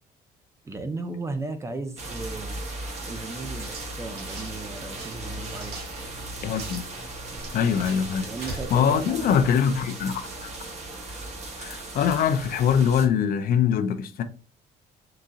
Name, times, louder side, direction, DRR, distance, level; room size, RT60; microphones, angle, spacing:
voice 1, 0.6-2.6 3.0-6.0 8.2-9.5, right 3 dB, 15° right, 0.5 m, -36 dB
sound 1, 2.0-13.1, right 2 dB, 40° right, 1.0 m, -37 dB
sound 2, 3.5-10.0, right 3 dB, 70° right, 1.1 m, -42 dB
voice 2, 6.4-6.8 7.5-8.3 8.7-10.5 11.6-14.2, left 7 dB, 60° left, 0.4 m, -23 dB
3.8 x 2.7 x 2.4 m
cardioid pair, 110°, 17 cm